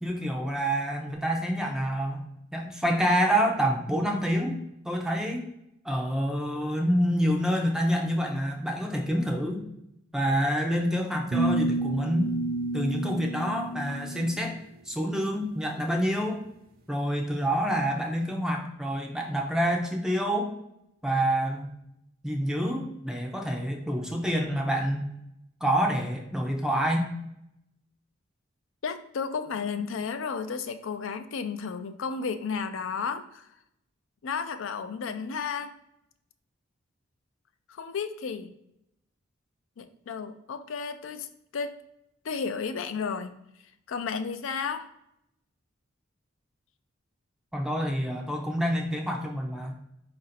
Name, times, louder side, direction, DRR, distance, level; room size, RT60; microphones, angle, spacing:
voice 1, 0.0-5.5 5.8-9.7 10.1-12.3 12.7-14.5 14.9-16.4 16.9-20.5 21.0-21.7 22.2-25.0 25.6-27.1 47.5-49.7, equal, 5° right, 1 dB, 0.5 m, -27 dB
sound 1, 11.3-14.4, right 2 dB, 50° right, 0.5 m, -30 dB
voice 2, 28.8-33.5 34.2-35.8 37.7-38.5 39.8-41.8 42.2-43.4 43.9-44.9, left 5 dB, 65° left, 10 dB, 0.4 m, -33 dB
4.8 x 2.6 x 4.1 m, 0.81 s
head